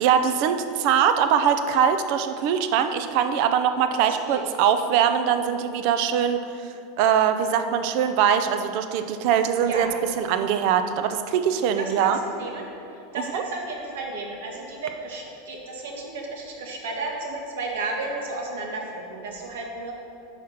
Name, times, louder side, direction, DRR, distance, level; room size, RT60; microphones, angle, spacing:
voice 1, 0.0-9.9 10.2-12.2 13.1-13.4, right 8 dB, 40° right, 8 dB, 0.4 m, -22 dB
voice 2, 11.8-12.7 13.1-19.9, right 3 dB, 85° right, -1 dB, 1.4 m, -33 dB
6.0 x 4.9 x 5.7 m, 2.6 s
supercardioid pair, 175°, 0 cm